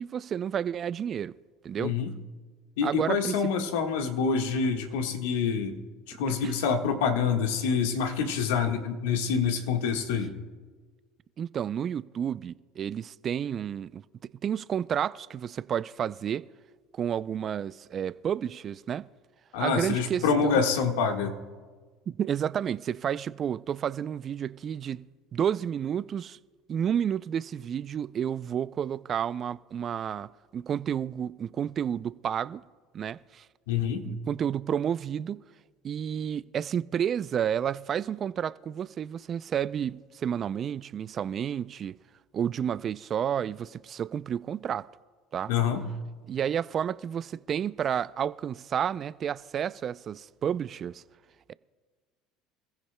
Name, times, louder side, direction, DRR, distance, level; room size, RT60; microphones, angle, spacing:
voice 1, 0.0-1.3 1.6-2.0 2.8-3.4 6.3-6.5 11.4-14.0 14.4-16.5 16.9-19.1 19.6-20.6 22.1-25.1 25.3-26.4 26.7-32.6 32.9-33.5 34.0-35.4 35.8-42.0 42.3-44.9 45.3-45.5 46.3-51.0, right 8 dB, 40° right, 0.4 m, -31 dB
voice 2, 1.8-2.1 2.8-5.8 6.1-10.3 19.5-21.4 33.7-34.0 45.5-45.8, left 6 dB, 85° left, 1.5 m, -26 dB
26.5 x 14.5 x 2.2 m
supercardioid pair, 100°, 0 cm